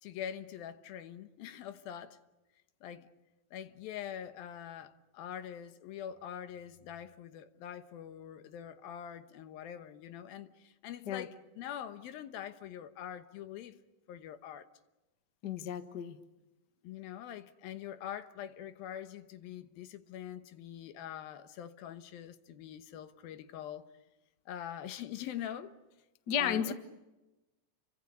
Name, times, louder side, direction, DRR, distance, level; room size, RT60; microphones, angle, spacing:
voice 1, 0.0-2.2 2.8-3.1 3.5-13.8 14.1-14.7 16.8-23.9 24.5-25.8 26.4-26.7, left 10 dB, 80° left, 3.0 m, -44 dB
voice 2, 15.4-16.2 26.3-26.7, left 8 dB, 50° left, 1.2 m, -33 dB
29.5 x 24.5 x 6.9 m
omnidirectional pair, 4.2 m